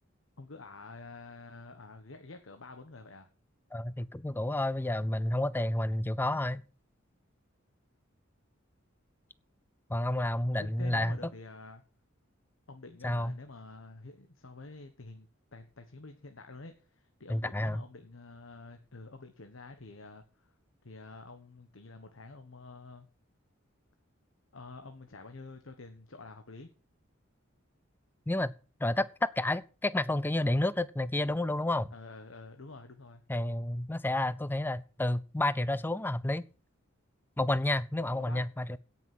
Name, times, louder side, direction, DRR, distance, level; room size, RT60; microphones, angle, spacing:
voice 1, 0.4-3.3 10.5-11.8 12.7-20.5 20.8-23.1 24.5-26.7 31.9-33.2 38.1-38.5, left 3 dB, 70° left, 1.2 m, -48 dB
voice 2, 3.7-6.6 9.9-11.2 13.0-13.3 17.3-17.8 28.3-28.5 28.8-31.9 33.3-36.4 37.4-38.8, left 1 dB, 10° left, 0.5 m, -30 dB
17.0 x 6.1 x 6.1 m
head